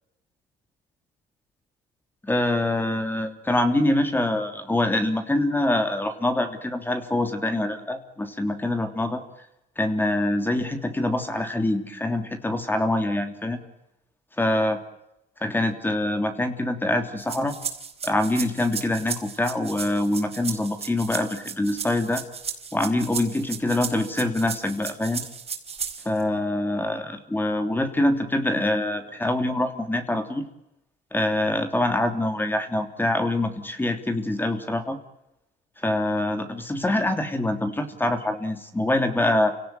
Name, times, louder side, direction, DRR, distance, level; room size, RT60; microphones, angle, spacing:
voice 1, 2.2-9.2 9.8-13.6 14.4-14.8 15.4-17.5 18.0-22.2 22.7-25.3 26.0-30.4 31.1-35.0 35.8-39.5, left 1 dB, 10° left, 6 dB, 3.1 m, -25 dB
sound 1, 17.2-26.2, right 6 dB, 35° right, 4.7 m, -35 dB
29.5 x 18.0 x 9.1 m, 0.89 s
cardioid pair, 110°, 17 cm